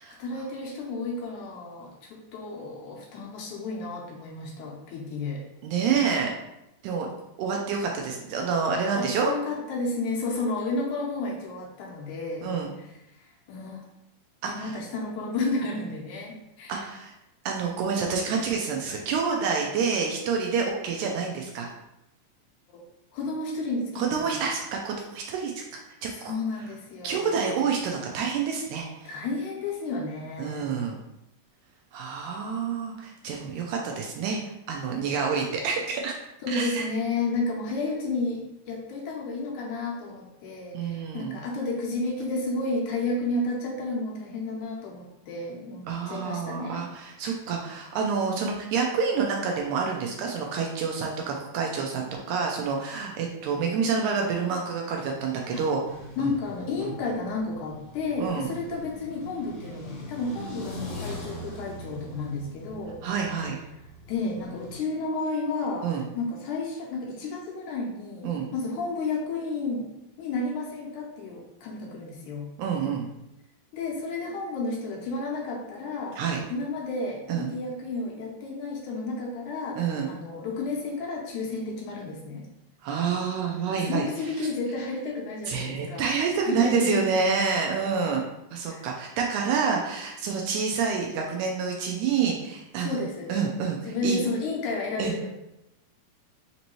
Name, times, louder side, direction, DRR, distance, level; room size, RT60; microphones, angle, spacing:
voice 1, 0.0-5.4 8.9-12.5 12.8-12.9 13.2-13.8 14.4-16.9 22.7-22.8 23.1-24.3 26.1-27.4 29.1-30.7 36.4-38.4 38.7-46.9 56.2-63.0 64.1-69.9 70.2-72.5 73.7-76.2 76.5-82.5 83.7-86.1 86.4-87.1 88.7-88.9 92.8-93.3 93.8-95.3, left 3 dB, 80° left, -2 dB, 2.0 m, -32 dB
voice 2, 5.6-6.3 6.8-7.1 7.4-9.3 12.4-12.7 14.4-14.8 16.7-17.1 17.4-21.7 24.0-26.3 27.0-29.1 30.4-31.0 31.9-34.4 34.7-36.1 36.5-36.9 40.7-41.4 45.9-55.8 56.2-56.3 56.8-56.9 58.2-58.5 63.0-63.6 65.8-66.0 68.2-68.5 72.6-73.1 76.2-76.4 77.3-77.5 79.8-80.1 82.8-84.0 84.4-84.5 85.5-88.2 88.5-93.0 93.3-94.2 95.0-95.1, right 5 dB, 80° right, 1 dB, 1.8 m, -28 dB
sound 1, 55.8-64.8, left 1 dB, 55° left, 2.4 m, -42 dB
5.2 x 2.7 x 2.9 m, 0.89 s
omnidirectional pair, 3.7 m